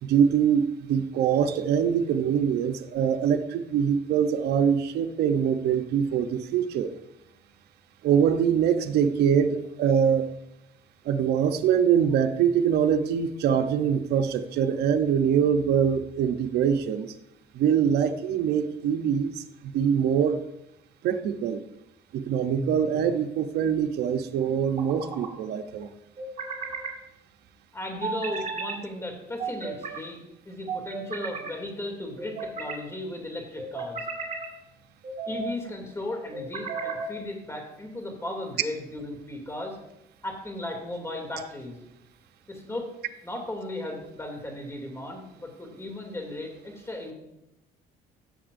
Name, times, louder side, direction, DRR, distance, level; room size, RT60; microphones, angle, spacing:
voice 1, 0.0-6.9 8.0-10.3 11.1-17.1 17.5-20.4 21.0-21.6 22.1-25.9, right 8 dB, 75° right, 7 dB, 0.8 m, -24 dB
sound 1, 22.5-23.2 24.5-25.3 26.2-27.0 28.0-28.8 29.4-30.0 30.7-31.5 32.2-32.8 33.6-34.5 35.0-35.6 36.3-37.1, right 4 dB, 45° right, 2.0 m, -35 dB
voice 2, 27.7-30.2 30.4-34.1 35.3-39.8 40.2-41.8 42.5-42.9 43.2-47.1, left 1 dB, 15° left, 2 dB, 2.6 m, -36 dB
16.5 x 7.1 x 2.6 m, 0.87 s
cardioid pair, 110°, 17 cm